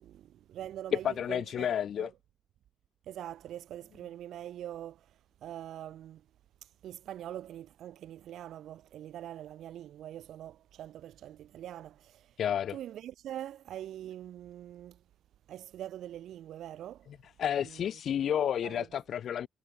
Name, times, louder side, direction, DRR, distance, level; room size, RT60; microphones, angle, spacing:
voice 1, 0.0-1.7 2.0-2.1 3.0-6.2 6.6-12.4 12.7-15.0 15.5-17.1 17.6-17.8 18.6-18.9, right 11 dB, 75° right, 5.4 m, -44 dB
voice 2, 0.9-2.1 12.4-12.8 17.4-19.5, left 9 dB, 65° left, 2.2 m, -30 dB
cardioid pair, 90°, 0 cm